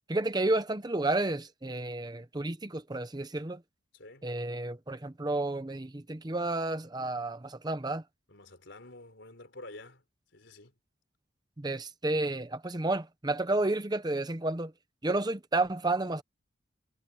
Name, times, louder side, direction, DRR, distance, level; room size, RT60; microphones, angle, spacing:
voice 1, 0.1-3.6 4.2-8.0 11.6-14.7 15.0-16.2, right 2 dB, 20° right, 0.7 m, -31 dB
voice 2, 3.9-4.3 8.3-10.1 10.3-10.7, left 2 dB, 65° left, 4.3 m, -49 dB
head